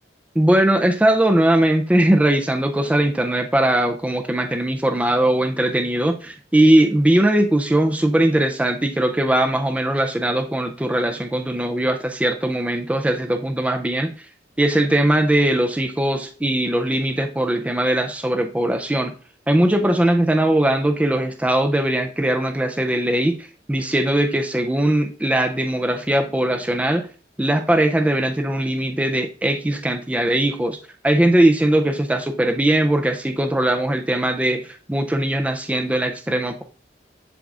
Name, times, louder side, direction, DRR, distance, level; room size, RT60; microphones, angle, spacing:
voice 1, 0.4-14.1 14.6-19.1 19.5-27.0 27.4-30.8 31.0-34.6 34.9-36.6, right 1 dB, 10° right, 6 dB, 0.4 m, -20 dB
10.0 x 3.8 x 2.4 m, 0.40 s
head